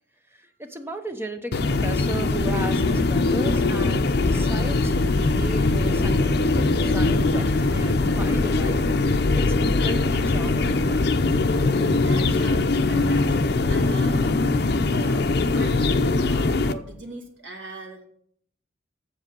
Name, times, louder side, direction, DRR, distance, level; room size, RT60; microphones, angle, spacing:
voice 1, 0.3-11.2, right 1 dB, 15° right, 6 dB, 0.8 m, -36 dB
sound 1, 1.5-16.7, left 3 dB, 55° left, 0.6 m, -21 dB
voice 2, 12.0-14.6 14.9-15.2 15.5-18.0, right 3 dB, 75° right, 1 dB, 2.3 m, -40 dB
7.7 x 7.5 x 5.3 m, 0.63 s
head